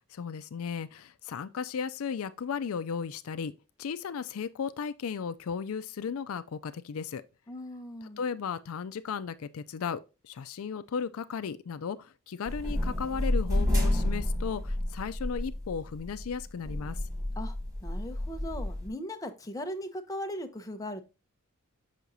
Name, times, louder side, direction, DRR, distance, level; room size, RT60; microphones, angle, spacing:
voice 1, 0.1-3.5 3.8-7.2 8.0-17.0, left 6 dB, 75° left, 0.4 m, -35 dB
voice 2, 7.5-8.2 17.4-17.6 17.8-21.1, equal, 15° left, 0.7 m, -38 dB
sound 1, 12.5-18.9, left 1 dB, 15° right, 2.0 m, -30 dB
6.2 x 5.8 x 2.6 m
head